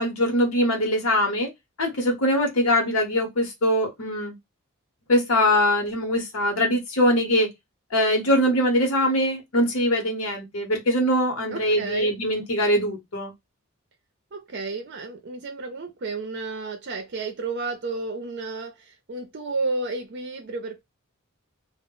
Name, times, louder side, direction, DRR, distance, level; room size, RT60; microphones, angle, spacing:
voice 1, 0.0-1.5 1.8-4.3 5.1-7.5 7.9-13.3, equal, 70° left, 0.8 m, -22 dB
voice 2, 11.5-12.1 14.3-20.8, right 3 dB, 50° right, 0.5 m, -32 dB
2.1 x 2.0 x 3.6 m
head